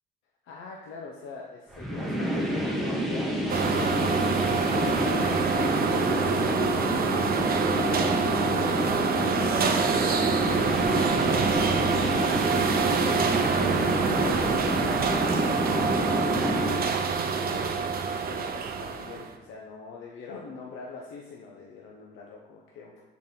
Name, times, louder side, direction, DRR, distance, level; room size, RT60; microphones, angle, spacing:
voice 1, 0.4-6.8 7.3-8.3 17.4-17.9 18.2-22.9, left 4 dB, 90° left, -1 dB, 0.7 m, -44 dB
sound 1, 1.7-16.7, equal, ahead, 1.0 m, -28 dB
sound 2, 3.5-19.3, right 5 dB, 50° right, 0.6 m, -26 dB
6.5 x 4.1 x 3.6 m, 1.2 s
cardioid pair, 90°, 20 cm